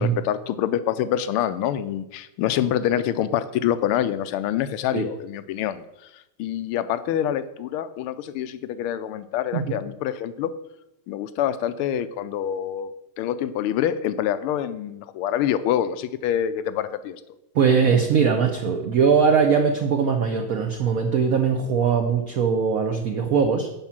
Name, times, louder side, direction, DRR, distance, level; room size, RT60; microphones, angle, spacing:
voice 1, 0.0-10.5 11.1-12.9 13.2-17.2, left 10 dB, 90° left, 13 dB, 1.5 m, -26 dB
voice 2, 17.5-23.7, right 6 dB, 60° right, 4 dB, 1.0 m, -21 dB
7.3 x 5.4 x 7.2 m, 0.90 s
omnidirectional pair, 2.3 m